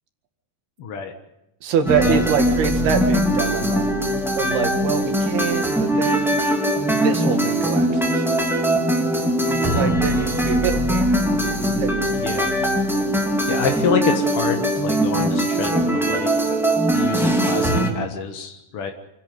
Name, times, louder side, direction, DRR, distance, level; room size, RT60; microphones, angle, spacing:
voice 1, 0.8-1.1 2.0-2.2 12.2-12.6 13.5-16.3 16.9-18.9, left 5 dB, 65° left, 4 dB, 1.4 m, -26 dB
voice 2, 1.6-3.9 4.4-6.4 6.8-8.3 9.5-11.1 11.7-12.6, right 7 dB, 70° right, 5 dB, 3.8 m, -25 dB
sound 1, 1.8-17.9, right 1 dB, ahead, 1.5 m, -21 dB
28.0 x 11.0 x 9.4 m, 0.91 s
omnidirectional pair, 4.7 m